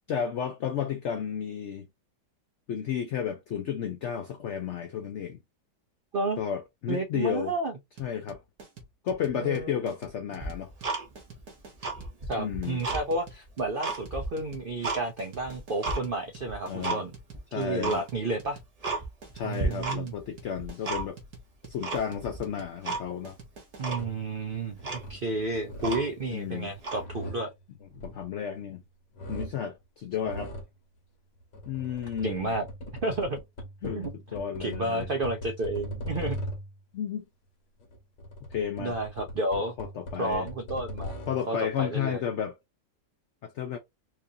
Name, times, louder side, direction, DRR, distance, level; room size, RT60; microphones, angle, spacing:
voice 1, 0.1-1.9 2.7-5.4 6.4-7.5 8.0-8.4 9.0-10.7 12.4-12.8 16.7-17.1 17.5-18.0 19.3-21.2 21.7-23.4 26.3-26.7 27.9-28.8 29.3-30.5 31.6-32.5 33.8-34.0 34.3-35.1 36.9-37.2 38.4-39.0 39.8-40.5 41.3-42.6 43.4-43.8, left 8 dB, 90° left, 0.6 m, -32 dB
voice 2, 6.9-7.7 9.3-9.7 12.3-17.1 17.5-18.6 19.4-20.1 23.8-27.5 30.3-30.5 32.2-32.7 33.0-33.4 33.8-34.1 34.6-36.4 38.8-39.7 40.2-41.1 41.5-42.2, right 2 dB, 80° right, 0.4 m, -31 dB
sound 1, 8.0-24.1, right 3 dB, 60° right, 1.6 m, -48 dB
Tick-tock, 10.4-11.4 11.7-13.0 13.5-15.0 15.4-16.0 16.5-17.0 17.3-17.4 17.8-18.0 18.4-18.5 18.8-19.3 19.6-20.2 20.5-21.3 21.8-22.4 22.8-23.0 23.4-23.5 23.8-24.1 24.5-24.6 24.8-26.3 26.8-27.0, right 3 dB, 30° right, 0.7 m, -33 dB
sound 2, 23.8-24.3 24.8-25.3 25.6-26.2 26.7-28.8 29.1-29.7 30.2-30.8 31.4-36.8 37.8-41.5, equal, 75° left, 1.7 m, -40 dB
4.5 x 2.6 x 2.7 m
omnidirectional pair, 1.9 m